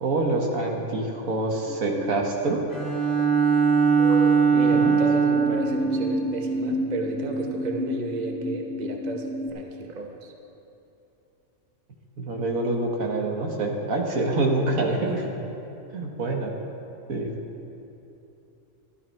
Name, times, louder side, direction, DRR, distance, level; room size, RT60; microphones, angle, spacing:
voice 1, 0.0-2.6 4.7-5.0 12.2-15.2 15.9-16.6 17.1-17.3, right 2 dB, 80° right, 1 dB, 1.7 m, -26 dB
sound 1, 1.7-2.2 4.0-5.0 5.4-9.5, equal, 5° left, 1.4 m, -30 dB
Bowed string instrument, 2.7-5.8, right 6 dB, 20° left, 2.0 m, -20 dB
voice 2, 4.5-10.3 14.4-15.2, right 2 dB, 35° right, 2 dB, 1.0 m, -33 dB
13.0 x 12.0 x 4.6 m, 2.9 s
omnidirectional pair, 1.4 m